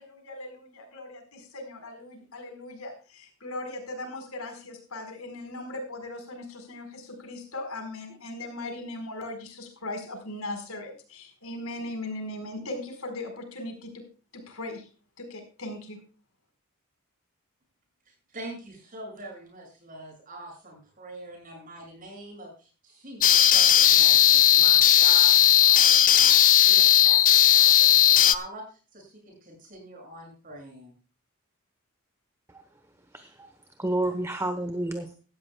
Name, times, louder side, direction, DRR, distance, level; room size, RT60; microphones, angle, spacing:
voice 1, 0.0-14.0 14.3-14.9 15.2-16.0, left 2 dB, 75° left, 5 dB, 4.5 m, -38 dB
voice 2, 18.3-28.6 28.9-30.9, right 1 dB, 40° right, 1 dB, 7.1 m, -43 dB
sound 1, 23.2-28.3, left 11 dB, 40° left, 0.7 m, -17 dB
voice 3, 33.1-33.5 33.8-35.1, right 1 dB, 15° right, 8 dB, 1.0 m, -30 dB
17.5 x 13.5 x 2.3 m, 0.36 s
head